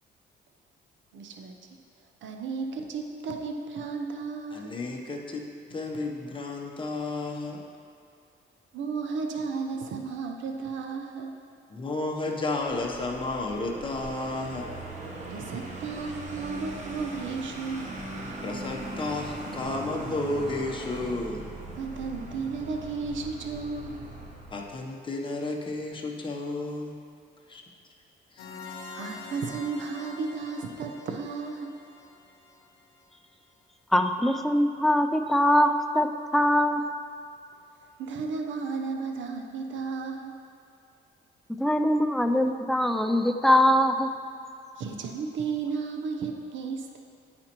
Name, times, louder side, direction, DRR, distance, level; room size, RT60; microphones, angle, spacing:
voice 1, 1.1-1.6 2.2-4.7 8.7-11.4 15.3-17.9 21.7-24.0 28.9-31.8 38.0-40.4 44.8-47.0, right 4 dB, 70° right, 3 dB, 0.7 m, -34 dB
voice 2, 4.5-7.6 11.7-14.7 18.4-21.5 24.5-27.0 27.5-27.6 28.3-28.4, left 2 dB, 25° left, 0 dB, 0.8 m, -32 dB
Vehicle, 12.6-24.8, right 2 dB, 35° right, 0.9 m, -40 dB
sound 1, 28.4-33.0, left 3 dB, 85° left, 0.7 m, -45 dB
voice 3, 33.9-36.1 36.3-36.8 41.6-44.1, left 1 dB, ahead, 6 dB, 0.3 m, -22 dB
9.5 x 4.2 x 3.0 m, 2.5 s
cardioid pair, 90°, 20 cm